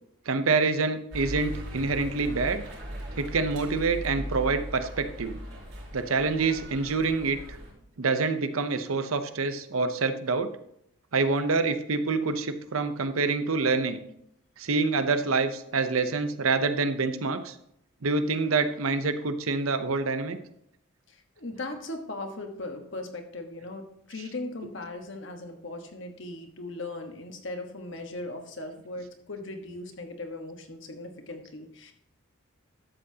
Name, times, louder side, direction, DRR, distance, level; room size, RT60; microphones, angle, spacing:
voice 1, 0.3-2.6 3.2-5.4 5.9-7.6 8.0-10.5 11.1-14.0 14.6-17.6 18.0-20.4 24.1-24.3, right 4 dB, 90° right, 10 dB, 0.7 m, -26 dB
sound 1, 1.1-7.7, equal, 65° right, 4.0 m, -39 dB
voice 2, 21.1-31.9, left 2 dB, 60° left, 4 dB, 1.3 m, -38 dB
12.0 x 7.8 x 2.8 m, 0.76 s
head